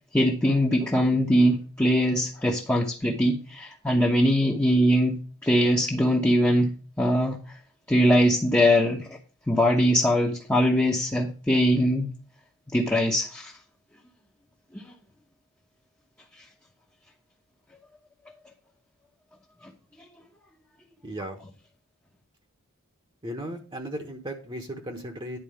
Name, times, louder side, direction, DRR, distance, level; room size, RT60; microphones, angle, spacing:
voice 1, 0.1-7.4 7.9-9.2 9.5-12.1 12.7-13.5 14.7-14.8, equal, 10° left, -3 dB, 1.0 m, -22 dB
voice 2, 21.0-21.4 23.2-25.4, right 1 dB, 25° right, 3 dB, 1.2 m, -36 dB
10.5 x 4.2 x 6.8 m, 0.36 s
head